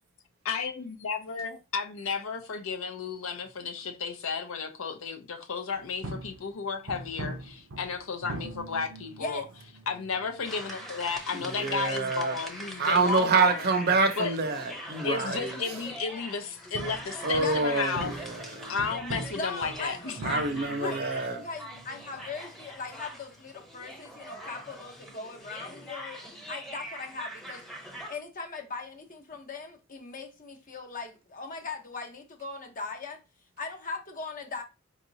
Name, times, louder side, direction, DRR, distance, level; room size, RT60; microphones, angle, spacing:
voice 1, 0.4-9.4 9.9-13.7 14.2-14.4 15.0-18.2 18.5-20.2 20.8-20.9, left 5 dB, 70° left, 0.7 m, -33 dB
sound 1, 5.7-25.1, right 2 dB, 85° right, 0.7 m, -44 dB
sound 2, 10.4-28.1, equal, ahead, 0.8 m, -42 dB
voice 2, 11.5-12.3 12.8-15.6 17.2-18.8 20.2-21.4, right 3 dB, 50° right, 0.6 m, -26 dB
voice 3, 19.4-27.6 28.1-33.2 33.6-34.6, left 4 dB, 40° left, 0.9 m, -39 dB
4.7 x 2.9 x 2.6 m
head